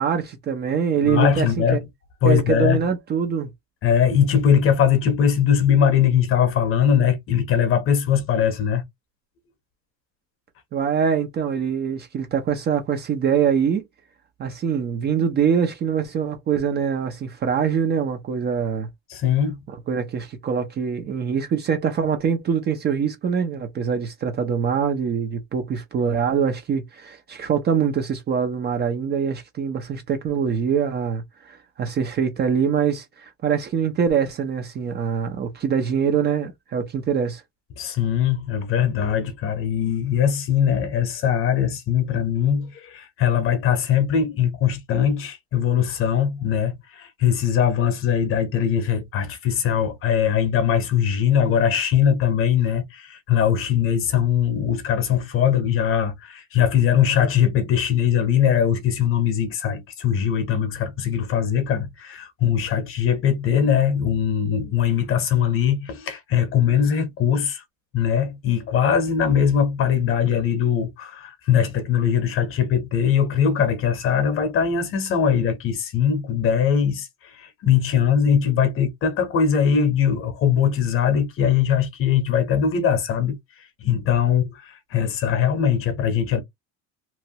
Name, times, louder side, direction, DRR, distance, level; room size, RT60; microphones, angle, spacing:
voice 1, 0.0-1.8 2.2-3.5 10.7-13.8 14.4-18.9 19.7-37.4, right 7 dB, 30° right, 0.5 m, -24 dB
voice 2, 1.0-1.8 2.2-2.8 3.8-8.8 19.1-19.6 37.8-67.6 67.9-77.1 77.4-83.4 83.8-86.4, left 8 dB, 40° left, 0.8 m, -21 dB
2.9 x 2.2 x 2.7 m
cardioid pair, 170°, 35 cm